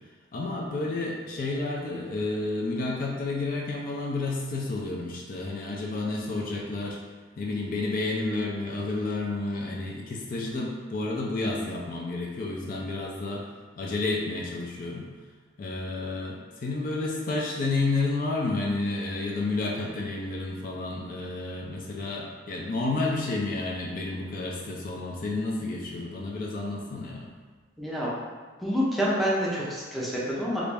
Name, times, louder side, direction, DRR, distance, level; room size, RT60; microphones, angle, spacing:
voice 1, 0.3-7.0 7.4-13.4 13.8-15.1 15.6-27.3, left 2 dB, 50° left, -2 dB, 0.4 m, -30 dB
voice 2, 27.8-28.1 28.6-30.6, equal, ahead, -7 dB, 0.6 m, -27 dB
3.1 x 2.5 x 3.4 m, 1.4 s
head